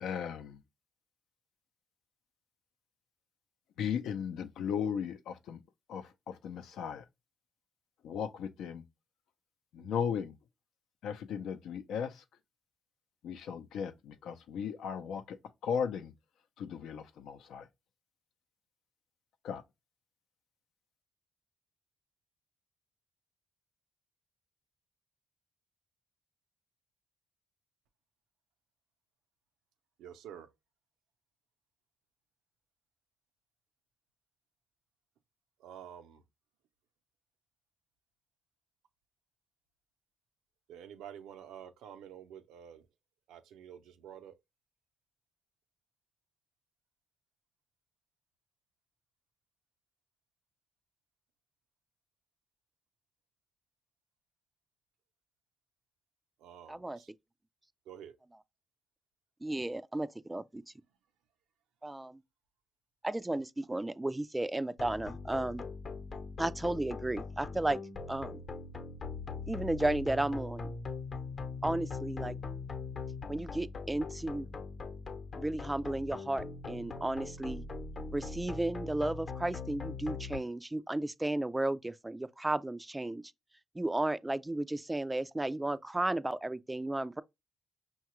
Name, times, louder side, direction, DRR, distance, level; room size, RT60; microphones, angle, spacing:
voice 1, 0.0-0.6 3.8-5.6 5.9-7.0 8.0-8.8 9.7-10.3 11.0-12.1 13.2-15.4 15.6-16.1 16.6-17.6 19.4-19.6, left 7 dB, 80° left, 0.6 m, -36 dB
voice 2, 30.0-30.5 35.6-36.2 40.7-42.8 43.3-44.3 56.4-57.1 57.9-58.1, right 9 dB, 90° right, 0.6 m, -49 dB
voice 3, 56.7-57.0 59.4-60.6 61.8-62.2 63.0-65.6 66.4-67.8 68.1-68.4 69.5-70.7 71.6-72.4 73.3-74.5 75.3-77.6 78.1-83.2 83.8-87.2, right 1 dB, 10° right, 0.3 m, -34 dB
sound 1, 64.8-80.4, left 4 dB, 45° left, 0.9 m, -41 dB
5.6 x 2.3 x 3.0 m
cardioid pair, 90°, 0 cm